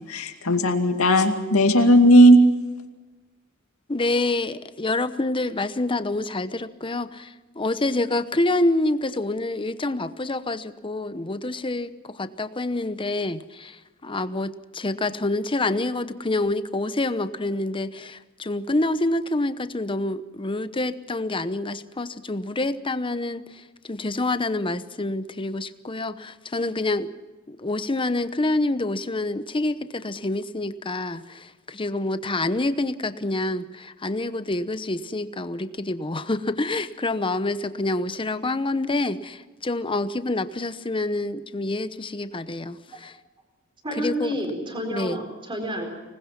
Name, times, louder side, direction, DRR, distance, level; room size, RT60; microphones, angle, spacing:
voice 1, 0.0-2.4, equal, 80° left, 4 dB, 2.4 m, -16 dB
voice 2, 3.9-27.1 27.5-43.2 43.9-44.3 44.9-45.2, left 2 dB, 25° left, 12 dB, 0.9 m, -27 dB
voice 3, 43.8-45.9, equal, 25° right, 3 dB, 4.3 m, -29 dB
25.5 x 20.0 x 5.9 m, 1.1 s
head